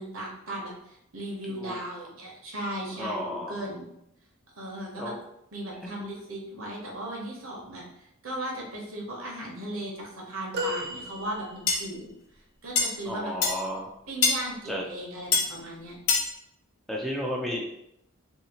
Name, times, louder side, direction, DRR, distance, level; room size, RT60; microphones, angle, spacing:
voice 1, 0.0-3.8 4.6-5.1 5.5-12.1 12.6-13.3 14.1-15.9, right 1 dB, 70° right, -1 dB, 0.9 m, -37 dB
voice 2, 3.0-3.5 5.0-5.2 5.8-5.9 13.1-13.9 14.7-14.8 16.9-17.6, equal, ahead, -2 dB, 0.3 m, -32 dB
sound 1, 10.5-12.0 14.3-14.5 15.8-15.9, equal, 50° right, 0.6 m, -35 dB
sound 2, 11.7-11.8 12.8-12.9 13.4-13.6 14.2-14.4 15.3-15.5 16.1-16.3, left 4 dB, 65° left, 0.6 m, -22 dB
2.8 x 2.7 x 2.9 m, 0.78 s
head